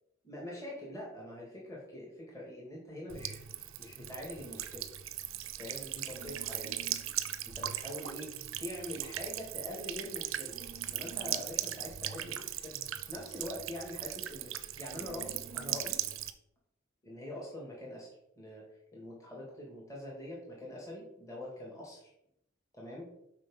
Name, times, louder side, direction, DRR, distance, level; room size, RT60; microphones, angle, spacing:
voice 1, 0.2-3.4 3.8-4.9 5.6-6.8 7.5-10.6 10.9-12.8 13.1-16.0 17.0-18.1 18.4-18.7 18.9-22.1 22.7-23.1, left 1 dB, 15° left, -4 dB, 2.3 m, -44 dB
Buzz / Water tap faucet / Trickle dribble, 3.1-16.3, right 12 dB, 65° right, 0.6 m, -39 dB
7.6 x 4.9 x 5.5 m, 0.76 s
head